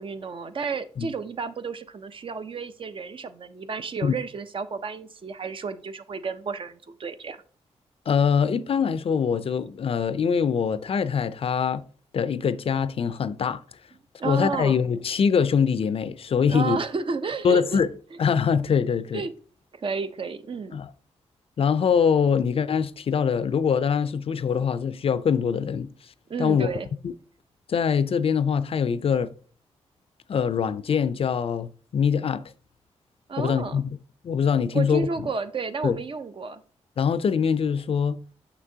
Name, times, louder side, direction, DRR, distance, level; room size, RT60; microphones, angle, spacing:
voice 1, 0.0-7.4 14.2-14.8 16.5-17.8 19.1-19.3 19.7-20.8 26.3-26.9 33.3-33.8 34.7-36.6, right 5 dB, 50° right, 0.6 m, -32 dB
voice 2, 8.1-11.8 12.1-13.6 14.2-16.8 17.4-17.9 18.2-19.2 20.7-20.9 21.6-25.9 26.4-26.7 27.0-27.1 27.7-29.3 30.3-32.4 33.4-34.0 34.2-35.3 35.8-36.0 37.0-38.2, left 6 dB, 55° left, 0.4 m, -23 dB
6.0 x 6.0 x 2.7 m
cardioid pair, 70°, 12 cm